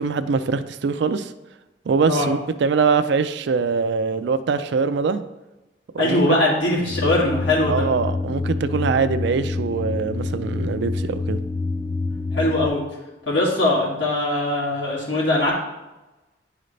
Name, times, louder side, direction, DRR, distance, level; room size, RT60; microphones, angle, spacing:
voice 1, 0.0-1.3 1.9-5.2 5.9-6.2 7.7-11.4, right 5 dB, 65° right, 11 dB, 0.4 m, -23 dB
voice 2, 6.0-7.8 12.3-12.8 13.3-15.5, left 2 dB, 85° left, -7 dB, 2.1 m, -21 dB
sound 1, 6.9-12.7, left 3 dB, 50° left, 1.3 m, -27 dB
10.0 x 3.9 x 3.2 m, 1.0 s
head